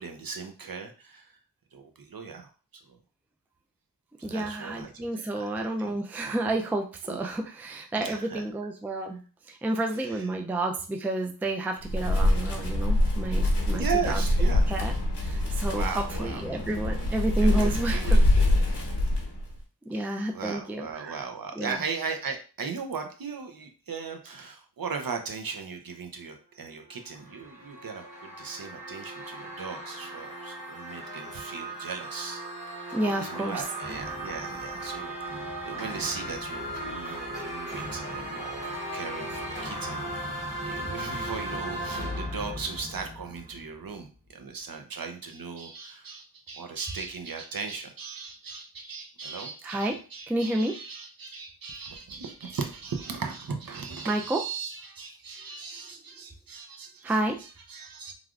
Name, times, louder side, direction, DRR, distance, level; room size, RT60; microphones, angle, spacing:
voice 1, 0.0-1.4 1.7-2.5 2.9-3.0 4.2-6.0 6.2-6.4 7.0-7.2 7.9-8.4 10.0-10.3 13.7-14.7 15.7-16.4 17.4-18.6 19.9-20.1 20.3-32.4 32.8-58.1, right 5 dB, 60° right, 4 dB, 0.6 m, -38 dB
voice 2, 4.2-9.2 9.5-14.2 14.7-14.9 15.2-18.2 19.8-21.2 21.6-21.8 32.9-33.6 49.6-50.0 50.3-50.7 54.1-54.4 57.0-57.4, right 1 dB, 5° right, 4 dB, 0.3 m, -30 dB
Wind, 11.8-19.6, left 1 dB, 85° left, 0.9 m, -24 dB
sound 1, 26.9-43.9, right 1 dB, 80° right, 1.3 m, -37 dB
3.2 x 2.4 x 2.3 m, 0.36 s
wide cardioid pair, 80°, 40 cm